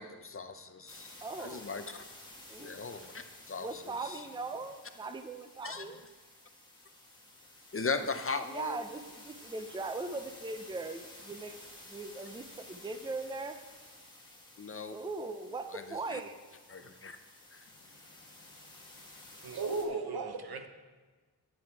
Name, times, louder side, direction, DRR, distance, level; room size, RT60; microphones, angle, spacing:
voice 1, 0.0-2.0 2.6-4.2 5.6-5.8 7.7-8.8 14.6-15.0 15.7-15.8 16.1-16.2 16.7-17.2 17.5-17.6, left 4 dB, 35° left, 8 dB, 0.6 m, -38 dB
sound 1, 0.9-19.9, left 1 dB, 10° left, 1.7 m, -53 dB
voice 2, 1.2-1.7 2.5-2.7 3.6-6.0 8.4-11.5 11.8-13.6 14.9-16.4, right 3 dB, 10° right, 9 dB, 0.5 m, -40 dB
voice 3, 19.4-20.7, right 3 dB, 65° right, 7 dB, 1.0 m, -35 dB
9.9 x 9.3 x 4.7 m, 1.4 s
wide cardioid pair, 135°, 39 cm